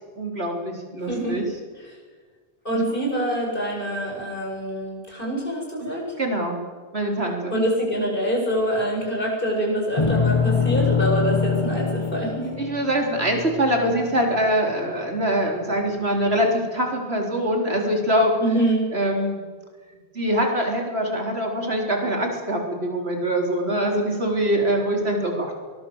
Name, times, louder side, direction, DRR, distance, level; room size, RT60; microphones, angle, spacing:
voice 1, 0.2-1.5 2.7-2.9 5.8-6.6 6.9-7.6 12.6-18.3 18.9-19.4 20.1-25.5, equal, 75° right, 1 dB, 4.4 m, -24 dB
voice 2, 1.1-1.5 2.6-6.0 7.5-12.5 18.4-18.9, right 1 dB, 55° left, -1 dB, 8.3 m, -25 dB
sound 1, 10.0-14.4, left 5 dB, 30° left, 1.0 m, -24 dB
23.5 x 20.0 x 8.1 m, 1.5 s
omnidirectional pair, 1.1 m